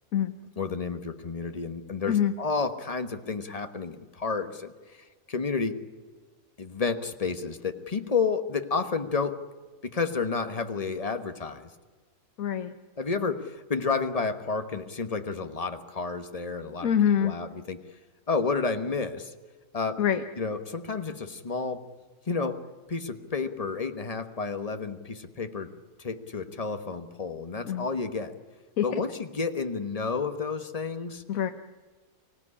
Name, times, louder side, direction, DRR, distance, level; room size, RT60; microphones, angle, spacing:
voice 1, 0.6-5.8 6.6-9.4 9.8-11.7 13.0-16.9 17.2-17.8 18.3-19.3 19.7-20.0 20.4-21.8 22.3-25.7 26.0-28.3 28.8-31.2, left 4 dB, 25° left, 8 dB, 1.2 m, -31 dB
voice 2, 12.4-12.7 16.8-17.3 20.0-20.2 27.6-27.9 28.8-28.9 31.3-31.5, left 9 dB, 65° left, 9 dB, 1.3 m, -24 dB
24.5 x 17.5 x 9.9 m, 1.4 s
omnidirectional pair, 1.7 m